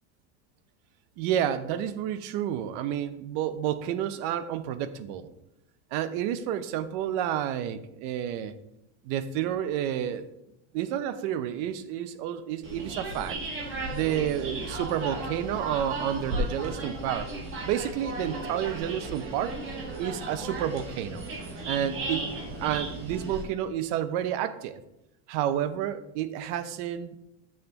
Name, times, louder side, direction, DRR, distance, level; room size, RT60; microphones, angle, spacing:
voice 1, 1.2-5.3 5.9-8.5 9.0-10.2 10.7-13.4 13.9-17.3 17.6-19.6 20.0-21.3 21.7-24.8 25.3-27.2, right 10 dB, 60° right, 12 dB, 0.8 m, -30 dB
sound 1, 12.6-23.4, right 2 dB, 30° right, 1.7 m, -35 dB
9.7 x 6.7 x 2.9 m, 0.85 s
supercardioid pair, 145°, 38 cm